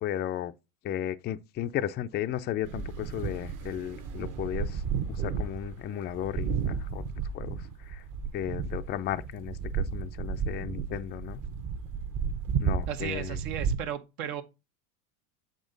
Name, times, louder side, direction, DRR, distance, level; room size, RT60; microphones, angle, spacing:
voice 1, 0.0-0.5 0.8-4.8 5.1-7.0 7.3-7.6 7.9-8.0 8.3-11.4 12.6-13.4, left 11 dB, 25° left, 0.3 m, -34 dB
sound 1, 2.6-13.8, right 6 dB, 45° right, 1.0 m, -33 dB
voice 2, 12.9-14.4, right 10 dB, 75° right, 1.2 m, -35 dB
7.0 x 5.1 x 3.8 m
supercardioid pair, 115°, 44 cm